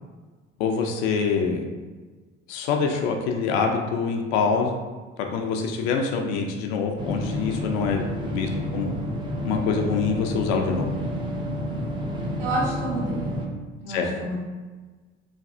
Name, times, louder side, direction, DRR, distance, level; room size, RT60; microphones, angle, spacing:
voice 1, 0.6-1.6 2.5-4.7 5.2-8.9 9.4-10.9 13.9-14.1, left 5 dB, 55° left, 3 dB, 0.5 m, -25 dB
sound 1, 7.0-13.5, equal, 15° right, 0.4 m, -30 dB
voice 2, 12.4-13.3 13.8-14.4, right 1 dB, 55° right, -5 dB, 1.3 m, -29 dB
3.2 x 2.3 x 2.6 m, 1.3 s
figure-of-eight pair, 55°, 37 cm